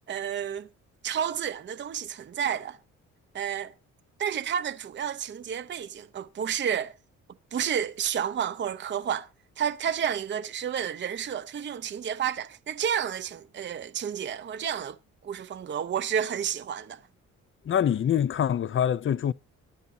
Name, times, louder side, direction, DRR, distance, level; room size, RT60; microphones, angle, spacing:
voice 1, 0.1-0.7 1.0-2.8 3.3-3.7 4.2-6.9 7.5-9.3 9.6-15.0 15.2-17.0, right 8 dB, 40° right, 0.7 m, -30 dB
voice 2, 17.7-19.3, left 9 dB, 40° left, 0.6 m, -25 dB
22.5 x 8.4 x 2.7 m
cardioid pair, 90°, 30 cm